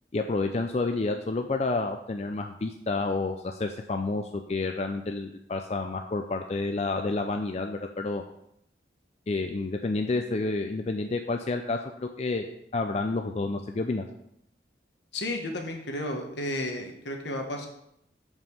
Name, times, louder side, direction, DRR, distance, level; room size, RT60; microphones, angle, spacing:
voice 1, 0.1-8.2 9.3-14.0, left 3 dB, 35° left, 4 dB, 0.4 m, -29 dB
voice 2, 15.1-17.7, left 1 dB, 75° left, 3 dB, 1.3 m, -32 dB
5.4 x 5.2 x 6.3 m, 0.77 s
head